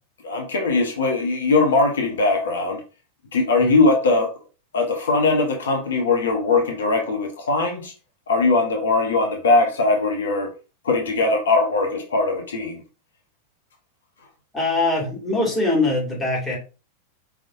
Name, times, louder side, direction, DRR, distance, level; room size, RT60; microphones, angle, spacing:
voice 1, 0.2-2.8 3.3-4.3 4.7-7.9 8.3-10.5 10.8-12.8, left 3 dB, 65° left, 0.9 m, -20 dB
voice 2, 14.5-16.6, left 2 dB, 10° left, 2.2 m, -22 dB
5.0 x 3.5 x 2.5 m
figure-of-eight pair, 90°, 0 cm